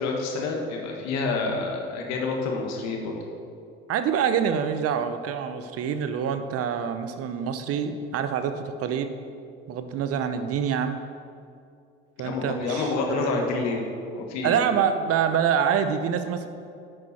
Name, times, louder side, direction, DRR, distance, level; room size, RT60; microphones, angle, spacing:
voice 1, 0.0-3.1 12.2-13.9 14.1-14.6, left 3 dB, 65° left, 1 dB, 1.6 m, -28 dB
voice 2, 3.9-9.1 9.7-11.0 12.2-13.4 14.4-16.5, right 8 dB, 55° right, 9 dB, 0.8 m, -26 dB
10.5 x 6.5 x 4.3 m, 2.4 s
hypercardioid pair, 60°, 29 cm